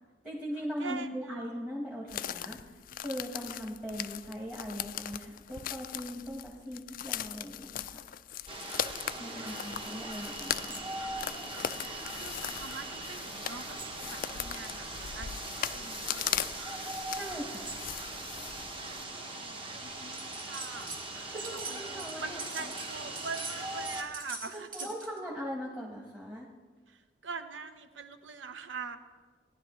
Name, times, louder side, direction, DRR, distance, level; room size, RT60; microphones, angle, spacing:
voice 1, 0.2-2.6 2.9-8.0 9.2-10.8 17.1-17.8 21.1-22.7 24.5-26.5, equal, 10° right, -5 dB, 1.3 m, -40 dB
voice 2, 0.8-1.4 9.2-10.2 12.2-16.8 18.9-21.0 21.5-24.9 26.9-29.0, right 4 dB, 75° right, 9 dB, 0.8 m, -44 dB
sound 1, 2.1-19.0, left 10 dB, 50° left, 0.3 m, -39 dB
sound 2, 8.5-24.0, right 2 dB, 30° right, 1.2 m, -40 dB
sound 3, 20.1-21.0 21.3-25.2, right 3 dB, 45° right, 2.5 m, -42 dB
17.5 x 11.0 x 3.2 m, 1.4 s
head